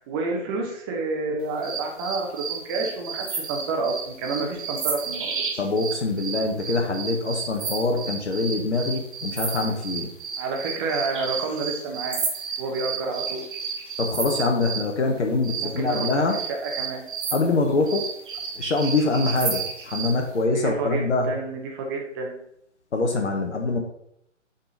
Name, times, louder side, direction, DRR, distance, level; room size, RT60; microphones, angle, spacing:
voice 1, 0.0-5.4 10.4-12.2 12.6-13.5 15.6-16.2 16.5-17.0 20.5-22.4, right 3 dB, 20° right, 1 dB, 1.1 m, -29 dB
sound 1, 1.6-14.9 15.4-20.2, right 6 dB, 45° right, 1.6 m, -32 dB
voice 2, 5.6-10.1 14.0-16.4 17.3-18.1 18.5-21.3 22.9-23.8, left 3 dB, 65° left, 2 dB, 1.3 m, -24 dB
8.0 x 4.1 x 4.0 m, 0.73 s
figure-of-eight pair, 140°, 37 cm